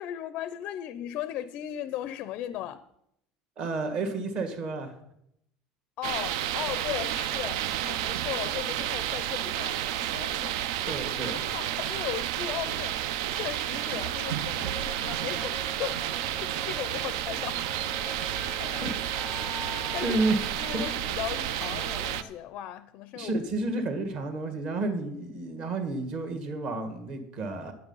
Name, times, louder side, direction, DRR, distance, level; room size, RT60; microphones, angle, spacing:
voice 1, 0.0-2.9 6.0-10.7 11.4-17.7 18.2-18.9 19.5-20.2 20.6-23.3, left 12 dB, 40° left, 0.5 m, -37 dB
voice 2, 3.6-4.9 10.9-11.4 18.8-18.9 20.0-20.5 20.7-20.8 23.1-27.7, right 2 dB, 35° right, 1.7 m, -30 dB
sound 1, 6.0-22.2, right 11 dB, 70° right, 0.6 m, -31 dB
sound 2, 14.6-22.3, left 1 dB, ahead, 0.8 m, -44 dB
9.7 x 9.6 x 5.5 m
cardioid pair, 175°, 3 cm